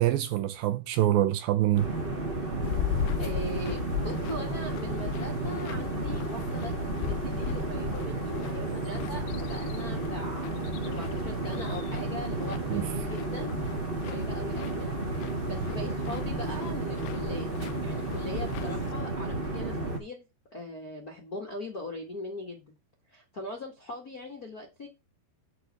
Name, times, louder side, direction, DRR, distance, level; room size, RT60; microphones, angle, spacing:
voice 1, 0.0-1.9 12.7-12.9, right 13 dB, 75° right, 2.3 m, -25 dB
sound 1, 1.7-20.0, right 2 dB, 55° right, 0.5 m, -32 dB
sound 2, 2.6-18.9, left 9 dB, 85° left, 2.8 m, -38 dB
voice 2, 3.2-10.5 10.8-13.5 14.1-15.0 15.4-17.5 17.8-20.2 20.5-22.7 23.1-24.9, left 2 dB, 45° left, 1.2 m, -40 dB
8.4 x 4.4 x 6.7 m
omnidirectional pair, 4.5 m